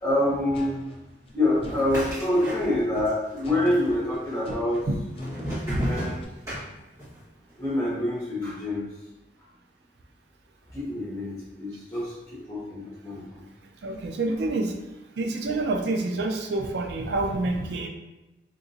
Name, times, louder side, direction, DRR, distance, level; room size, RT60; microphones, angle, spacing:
voice 1, 0.0-0.7 1.3-4.9 5.6-6.2 7.6-8.9 10.7-13.4, left 1 dB, 15° left, -8 dB, 1.3 m, -26 dB
sound 1, 0.5-2.1 3.4-6.2, left 1 dB, 35° left, 0.4 m, -42 dB
sound 2, 1.7-3.1 3.4-4.1 4.7-7.2, equal, 20° right, 1.3 m, -33 dB
voice 2, 13.8-14.7 15.2-17.9, right 2 dB, 75° right, 4 dB, 0.4 m, -27 dB
3.7 x 2.8 x 2.6 m, 0.97 s
head